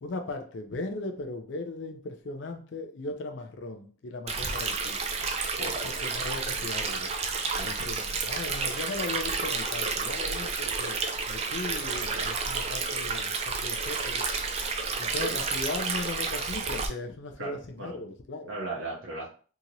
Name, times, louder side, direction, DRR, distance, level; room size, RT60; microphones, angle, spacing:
voice 1, 0.0-5.0 5.8-7.1 7.6-11.0 11.3-14.2 15.0-18.5, left 2 dB, 60° left, 5 dB, 0.4 m, -37 dB
Stream, 4.3-16.9, right 4 dB, 30° right, 0.3 m, -31 dB
voice 2, 17.4-18.0 18.5-19.3, right 2 dB, 70° right, -3 dB, 0.7 m, -37 dB
2.8 x 2.8 x 2.5 m, 0.41 s
head